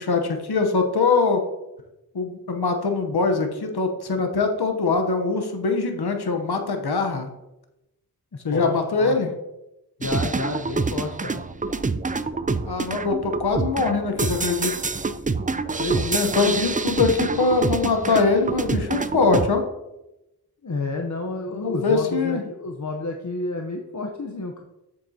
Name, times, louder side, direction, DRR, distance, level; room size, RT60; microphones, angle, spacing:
voice 1, 0.0-1.4 2.1-7.3 8.4-9.3 12.6-14.7 15.9-19.6 21.5-22.4, left 4 dB, 80° left, 4 dB, 0.9 m, -22 dB
voice 2, 8.5-9.2 10.0-11.4 15.8-16.7 20.6-24.6, left 2 dB, 50° left, 2 dB, 0.8 m, -30 dB
sound 1, 10.0-19.5, right 4 dB, 20° right, 0.4 m, -27 dB
7.6 x 7.5 x 2.8 m, 0.94 s
cardioid pair, 40°, 38 cm